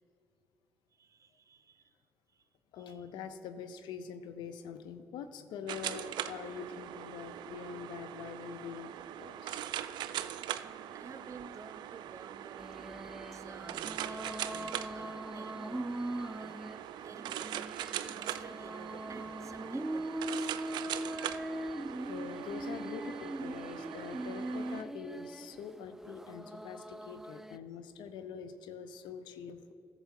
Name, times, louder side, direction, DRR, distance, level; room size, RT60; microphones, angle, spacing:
voice 1, 0.9-2.0 2.3-2.5 2.8-3.0 10.5-16.8 17.0-20.5 21.8-22.1, right 5 dB, 40° right, 11 dB, 0.7 m, -53 dB
voice 2, 2.7-8.9 9.2-9.6 22.1-29.7, left 6 dB, 75° left, 10 dB, 0.6 m, -44 dB
sound 1, 5.7-24.8, right 11 dB, 70° right, 0.4 m, -41 dB
sound 2, 12.6-27.6, right 1 dB, 5° right, 0.4 m, -41 dB
14.5 x 7.0 x 4.4 m, 2.9 s
hypercardioid pair, 40°, 8 cm